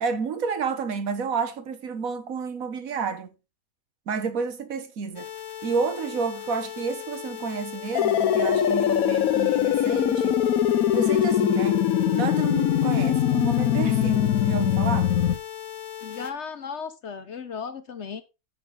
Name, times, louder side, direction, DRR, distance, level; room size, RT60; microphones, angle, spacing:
voice 1, 0.0-3.3 4.1-5.3 5.6-10.4 10.9-11.8 12.1-15.2, right 5 dB, 70° right, 1.6 m, -30 dB
sound 1, 5.1-16.3, left 10 dB, 25° left, 0.6 m, -38 dB
sound 2, 7.9-15.3, left 10 dB, 80° left, 1.1 m, -22 dB
voice 2, 16.0-18.2, left 6 dB, 55° left, 1.0 m, -35 dB
10.5 x 7.2 x 3.8 m
omnidirectional pair, 1.5 m